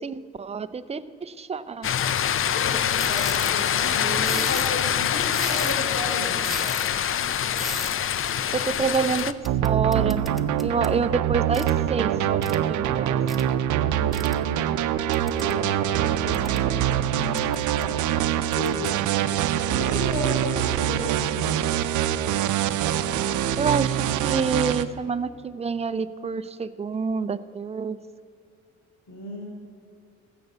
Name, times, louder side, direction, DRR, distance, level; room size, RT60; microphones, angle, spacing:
voice 1, 0.0-1.9 4.0-4.5 8.5-9.3 9.6-10.3 10.6-12.4 12.7-13.4 23.6-28.0, right 5 dB, 20° right, 11 dB, 0.5 m, -27 dB
sound 1, 1.8-9.3, left 9 dB, 45° left, 0.5 m, -25 dB
voice 2, 2.5-6.5 13.6-14.8 15.4-19.4 19.7-21.7 29.1-29.5, left 2 dB, 60° left, 0 dB, 4.0 m, -35 dB
sound 2, 3.0-3.6 4.3-4.8 5.3-5.9 6.4-6.9 7.6-8.0 8.9-11.0 11.5-11.8 12.4-12.6 13.3-13.4 14.1-14.4 15.1-15.6 16.1-16.7 17.4-17.8 18.5-18.9, equal, ahead, 0.9 m, -37 dB
sound 3, 9.4-24.8, right 11 dB, 80° right, 0.6 m, -24 dB
14.5 x 6.8 x 8.1 m, 2.3 s
cardioid pair, 90°, 30 cm